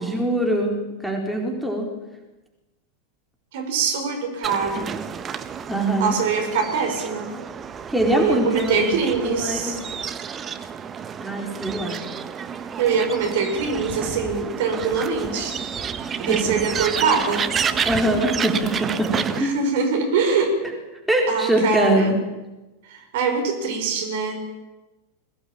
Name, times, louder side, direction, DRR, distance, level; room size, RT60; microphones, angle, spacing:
voice 1, 0.0-1.9 5.7-6.1 7.9-9.8 11.2-12.0 16.0-16.5 17.8-19.6 21.1-22.1, right 1 dB, 5° right, 1 dB, 4.4 m, -23 dB
voice 2, 3.5-4.9 6.0-7.3 8.1-9.8 11.9-12.0 12.8-15.6 16.2-17.5 19.3-20.6 21.3-22.1 22.9-24.4, right 5 dB, 55° right, 4 dB, 5.6 m, -23 dB
sound 1, 4.4-19.4, right 7 dB, 25° right, 1.3 m, -30 dB
22.0 x 18.0 x 8.9 m, 1.1 s
figure-of-eight pair, 90°, 0 cm